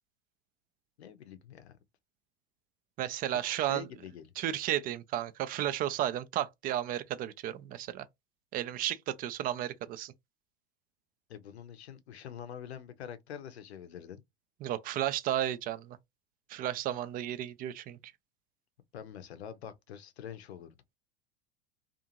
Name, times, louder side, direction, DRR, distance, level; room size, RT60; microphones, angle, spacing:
voice 1, 1.0-1.8 3.3-4.3 11.3-14.2 18.9-20.8, left 9 dB, 80° left, 0.6 m, -45 dB
voice 2, 3.0-3.9 4.4-8.1 8.5-10.1 14.6-16.0 16.5-18.0, right 12 dB, 30° right, 0.4 m, -33 dB
2.5 x 2.4 x 2.8 m
hypercardioid pair, 90°, 32 cm